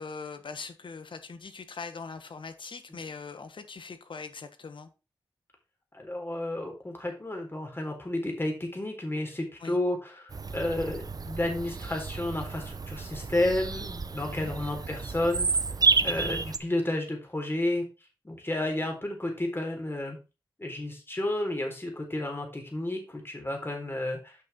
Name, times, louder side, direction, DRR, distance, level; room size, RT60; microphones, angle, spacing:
voice 1, 0.0-4.9 9.6-9.8 14.2-14.5 16.0-16.3, left 4 dB, 65° left, 1.4 m, -41 dB
voice 2, 5.9-15.5 16.0-17.9 18.2-20.2 20.6-24.4, left 1 dB, 25° left, 4.2 m, -31 dB
Bird vocalization bird call bird song, 10.3-16.6, right 4 dB, 45° right, 0.8 m, -30 dB
8.3 x 6.2 x 4.4 m
cardioid pair, 50°, 9 cm